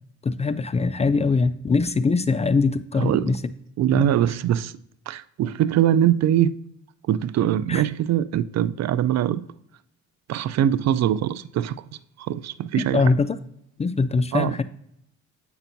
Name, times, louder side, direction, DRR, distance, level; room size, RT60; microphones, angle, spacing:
voice 1, 0.2-3.4 3.9-4.1 7.7-7.8 12.8-13.4 13.8-14.6, left 4 dB, 20° left, 0.4 m, -22 dB
voice 2, 3.0-3.3 3.8-4.7 5.1-6.5 7.1-9.5 10.3-11.7 12.2-13.0 14.3-14.6, right 11 dB, 60° right, 0.4 m, -22 dB
8.0 x 5.8 x 2.6 m
cardioid pair, 90°, 30 cm